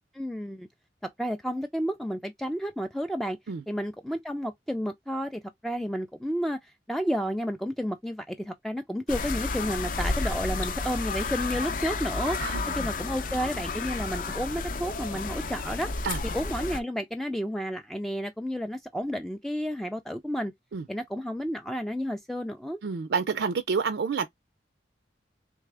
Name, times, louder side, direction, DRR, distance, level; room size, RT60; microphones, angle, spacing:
voice 1, 0.1-0.7 1.0-3.4 3.7-15.9 16.3-20.5 20.9-22.8, equal, ahead, 0.3 m, -31 dB
sound 1, 9.1-16.8, left 3 dB, 50° left, 0.6 m, -31 dB
voice 2, 12.4-12.7 16.0-16.2 20.7-20.8 22.8-24.3, right 5 dB, 75° right, 0.4 m, -28 dB
3.5 x 3.2 x 3.3 m
head